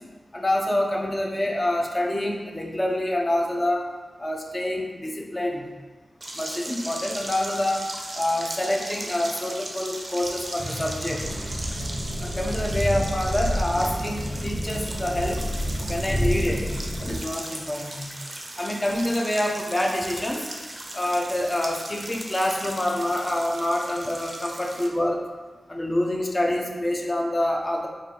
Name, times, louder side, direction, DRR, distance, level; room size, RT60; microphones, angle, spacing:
voice 1, 0.3-3.8 4.2-5.7 6.4-7.9 8.1-11.2 12.2-15.4 15.9-16.7 17.0-18.1 18.6-20.5 20.9-25.2 25.7-27.9, left 1 dB, 20° left, 0 dB, 0.5 m, -26 dB
sound 1, 6.2-24.9, right 1 dB, 30° right, 0.5 m, -37 dB
sound 2, 10.6-12.6, equal, 5° right, 0.8 m, -39 dB
sound 3, 11.2-17.2, equal, 75° left, 1.2 m, -29 dB
4.3 x 2.5 x 3.7 m, 1.3 s
wide cardioid pair, 130°, 0 cm